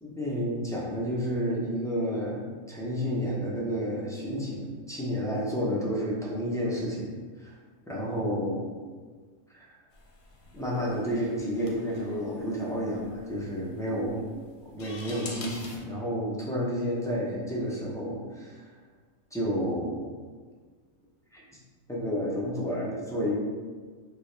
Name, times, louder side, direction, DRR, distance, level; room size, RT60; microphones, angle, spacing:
voice 1, 0.0-7.5 7.9-8.6 9.5-9.7 10.5-14.2 14.6-18.7 19.3-20.1 21.3-21.4 21.9-23.4, equal, 5° left, -6 dB, 0.3 m, -31 dB
sound 1, 9.9-15.8, left 3 dB, 55° left, 0.9 m, -46 dB
6.5 x 2.3 x 3.3 m, 1.5 s
omnidirectional pair, 1.5 m